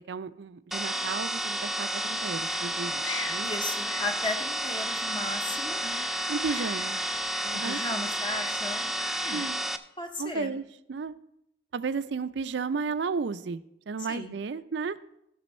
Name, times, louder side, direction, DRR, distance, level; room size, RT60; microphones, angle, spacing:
voice 1, 0.1-3.5 5.5-7.0 7.4-8.1 9.3-9.6 10.2-11.1 11.7-15.0, right 5 dB, 65° right, 14 dB, 0.4 m, -34 dB
sound 1, 0.7-9.8, right 1 dB, ahead, 0.3 m, -31 dB
sound 2, 2.2-9.5, left 4 dB, 85° left, 1.0 m, -43 dB
voice 2, 3.4-5.8 7.5-8.8 9.2-9.5 10.0-10.5 14.1-14.3, left 2 dB, 25° left, 5 dB, 0.7 m, -35 dB
15.0 x 6.2 x 4.2 m, 0.80 s
head